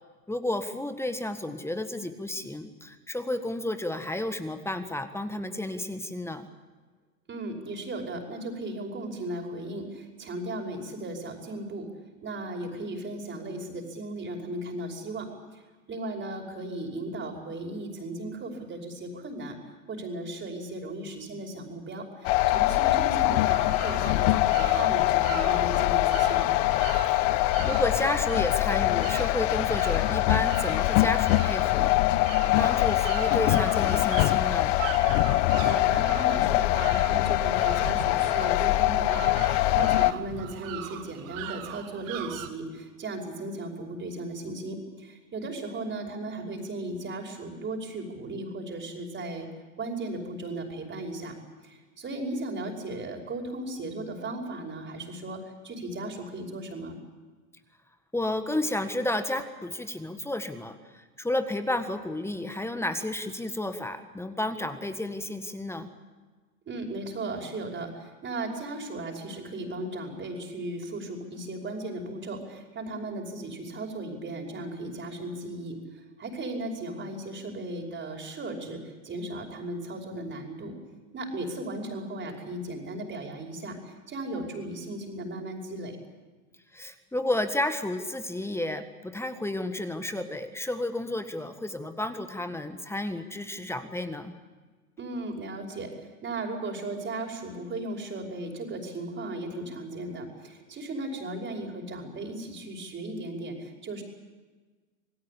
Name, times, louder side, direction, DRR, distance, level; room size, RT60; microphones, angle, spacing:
voice 1, 0.3-6.5 27.1-32.3 32.6-34.7 58.1-65.9 86.7-94.4, left 1 dB, 5° left, 8 dB, 1.7 m, -32 dB
voice 2, 7.3-11.9 12.2-26.5 35.4-49.5 49.8-51.4 51.6-57.0 66.7-80.7 81.1-86.0 95.0-104.0, right 2 dB, 25° right, 2 dB, 5.4 m, -36 dB
sound 1, 22.2-40.1, left 17 dB, 55° left, 1.0 m, -23 dB
sound 2, 23.4-42.5, right 12 dB, 55° right, 2.3 m, -41 dB
27.5 x 18.5 x 8.5 m, 1.3 s
hypercardioid pair, 105°, 45 cm